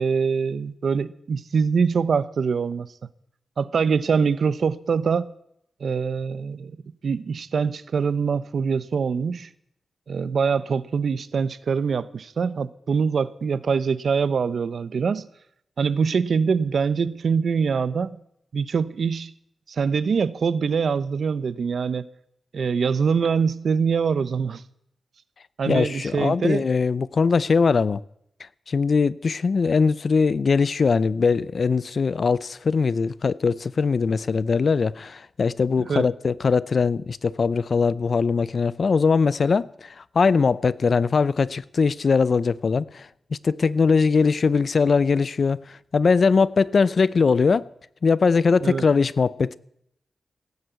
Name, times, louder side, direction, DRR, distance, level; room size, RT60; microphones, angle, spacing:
voice 1, 0.0-2.9 3.6-5.3 5.8-6.8 7.0-9.5 10.1-15.3 15.8-18.2 18.5-19.3 19.7-22.0 22.5-24.6 25.6-26.6 35.8-36.1 48.6-48.8, right 5 dB, 70° right, 0.8 m, -24 dB
voice 2, 25.7-28.0 28.7-47.7 48.0-49.6, left 5 dB, 55° left, 0.5 m, -21 dB
17.0 x 9.8 x 8.1 m
cardioid pair, 85°, 0 cm